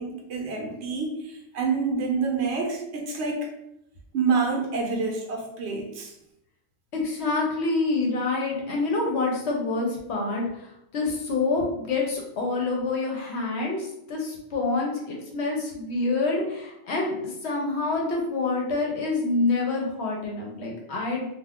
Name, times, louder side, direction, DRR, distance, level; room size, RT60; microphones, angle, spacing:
voice 1, 0.0-3.5 4.1-6.1, right 4 dB, 65° right, 1 dB, 0.9 m, -27 dB
voice 2, 6.9-10.4 10.9-21.3, left 3 dB, 65° left, -1 dB, 0.9 m, -27 dB
2.4 x 2.3 x 3.4 m, 0.81 s
omnidirectional pair, 1.3 m